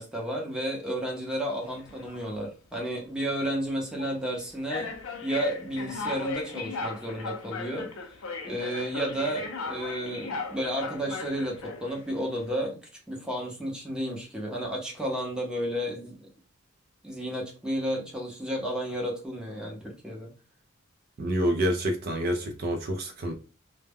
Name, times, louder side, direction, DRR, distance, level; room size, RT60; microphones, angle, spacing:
voice 1, 0.0-4.9 5.2-7.9 8.4-12.8 13.1-16.1 17.0-20.3, equal, 5° right, 0.6 m, -32 dB
sound 1, 1.7-2.2 2.9-3.1 4.0-4.1 4.7-12.0, left 3 dB, 70° left, 0.5 m, -37 dB
voice 2, 21.2-23.4, equal, 45° right, 0.3 m, -27 dB
2.1 x 2.0 x 3.4 m
head